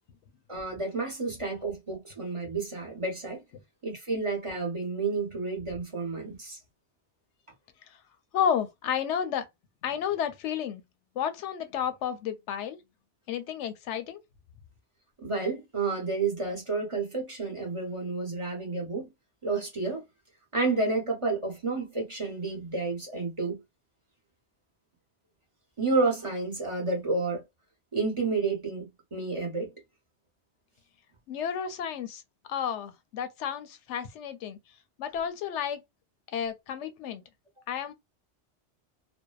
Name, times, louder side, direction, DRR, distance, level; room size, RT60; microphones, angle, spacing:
voice 1, 0.5-3.4 3.8-6.6 15.2-19.1 19.4-20.0 20.5-23.6 25.8-27.4 27.9-29.7, right 3 dB, 30° right, 0.9 m, -30 dB
voice 2, 8.3-9.5 9.8-10.8 11.2-12.8 13.3-14.2 31.3-32.2 32.5-34.6 35.0-35.8 36.3-37.2 37.7-37.9, left 8 dB, 85° left, 0.9 m, -31 dB
2.6 x 2.1 x 2.2 m
omnidirectional pair, 1.2 m